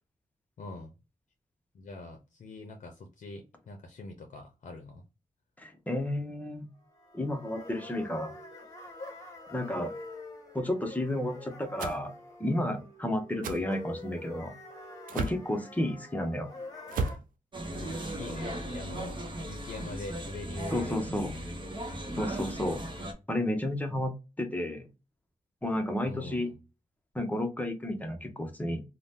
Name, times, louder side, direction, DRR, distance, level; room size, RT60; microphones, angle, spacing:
voice 1, 0.6-0.9 1.7-5.0 17.8-19.2 19.4-21.4 26.0-26.5, left 2 dB, 65° left, 0.6 m, -43 dB
voice 2, 5.6-6.7 7.1-8.3 9.5-9.9 10.5-12.1 12.4-14.5 15.1-16.5 20.7-21.3 22.2-22.8 23.3-24.9 25.6-26.5 27.1-28.8, left 1 dB, 10° left, 0.6 m, -32 dB
sound 1, 6.9-17.2, left 2 dB, 25° left, 1.0 m, -46 dB
sound 2, 11.8-12.0 13.4-13.6 15.1-15.4 16.9-17.2, right 4 dB, 90° right, 0.4 m, -32 dB
sound 3, 17.5-23.1, right 1 dB, 35° right, 0.7 m, -38 dB
2.6 x 2.1 x 3.4 m
wide cardioid pair, 110°, 14 cm